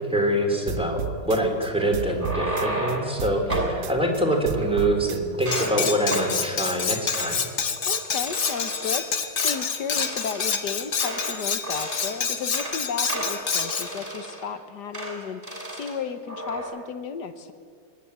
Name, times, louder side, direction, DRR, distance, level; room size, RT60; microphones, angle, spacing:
voice 1, 0.1-7.5, right 1 dB, 5° right, 2 dB, 2.9 m, -25 dB
sound 1, 0.7-2.9 3.2-5.5, right 7 dB, 60° right, 1.3 m, -33 dB
sound 2, 2.0-3.1 3.5-3.8 4.4-5.0 5.3-5.8 6.1-6.3 6.6-6.8 7.1-7.3 7.8-7.9 8.2-9.0 9.4-9.6 9.9-11.4 11.6-12.1 12.4-12.8 13.1-14.5 14.9-15.1 15.4-15.9 16.3-16.6, right 1 dB, 25° right, 5.4 m, -32 dB
Cutlery silverware, 5.5-13.9, left 6 dB, 40° left, 1.1 m, -28 dB
voice 2, 7.9-17.5, left 6 dB, 60° left, 10 dB, 1.4 m, -34 dB
24.5 x 11.0 x 9.6 m, 2.2 s
omnidirectional pair, 2.3 m